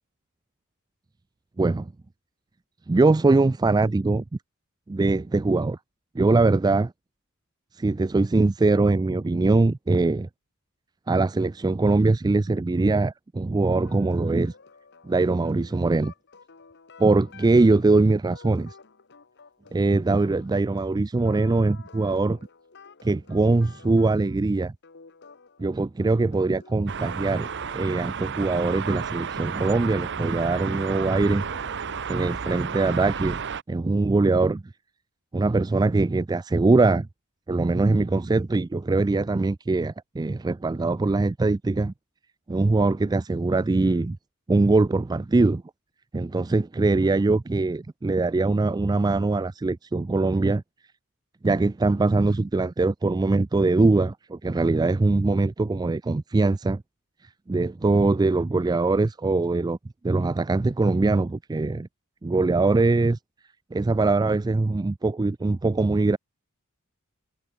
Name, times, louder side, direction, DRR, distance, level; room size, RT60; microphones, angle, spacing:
voice 1, 1.6-1.9 2.9-4.2 4.9-5.8 6.2-6.9 7.7-10.3 11.1-14.5 15.0-16.1 17.0-18.8 19.7-22.4 23.0-24.7 25.6-27.5 27.7-31.4 32.1-33.4 33.7-34.6 35.3-37.1 37.5-41.9 42.5-44.2 44.5-45.6 46.1-50.6 51.4-56.8 57.5-59.8 60.0-61.9 62.2-63.2 63.7-66.2, right 3 dB, 20° right, 0.3 m, -22 dB
sound 1, 13.8-33.0, left 4 dB, 50° left, 1.6 m, -51 dB
sound 2, 26.9-33.6, right 7 dB, 55° right, 0.8 m, -32 dB
head